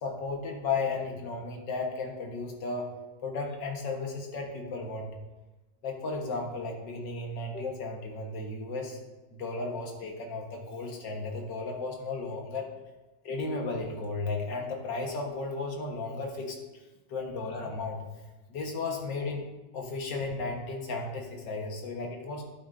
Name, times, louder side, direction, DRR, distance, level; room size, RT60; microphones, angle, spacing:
voice 1, 0.0-2.9 3.2-5.1 5.8-9.0 9.3-12.7 13.2-16.6 17.1-18.0 18.5-19.5 19.7-22.4, left 3 dB, 80° left, 1 dB, 2.0 m, -34 dB
11.5 x 8.6 x 2.6 m, 1.1 s
omnidirectional pair, 1.9 m